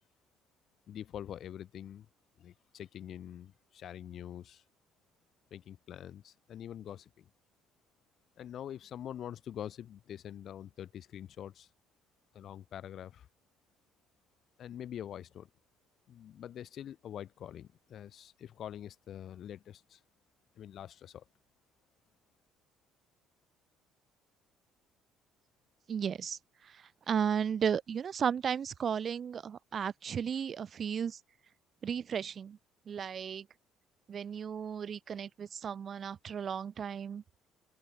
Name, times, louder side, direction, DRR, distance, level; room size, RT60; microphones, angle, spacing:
voice 1, 0.9-2.1 2.4-4.6 5.5-7.3 8.4-11.7 12.3-13.3 14.6-15.5 16.1-20.0 20.6-21.2, left 10 dB, 50° left, 2.5 m, -45 dB
voice 2, 25.9-26.4 27.1-31.2 31.8-32.6 32.9-33.4 34.1-37.2, right 7 dB, 40° right, 0.5 m, -34 dB
open air
cardioid pair, 135°, 0 cm